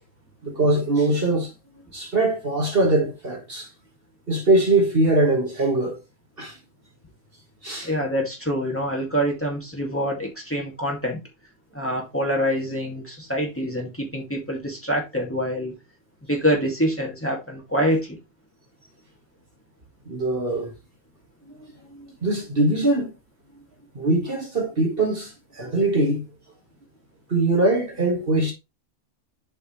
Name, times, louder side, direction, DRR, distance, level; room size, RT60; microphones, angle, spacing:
voice 1, 0.4-1.5 1.9-3.7 4.3-6.0 6.4-6.5 7.6-7.9 20.1-20.7 21.5-21.6 21.9-23.1 24.0-26.3 27.3-28.5, right 2 dB, 50° right, 1.8 m, -22 dB
voice 2, 7.8-11.2 11.7-15.8 16.3-18.2, equal, 10° left, 2.2 m, -25 dB
8.0 x 5.2 x 3.1 m
omnidirectional pair, 1.3 m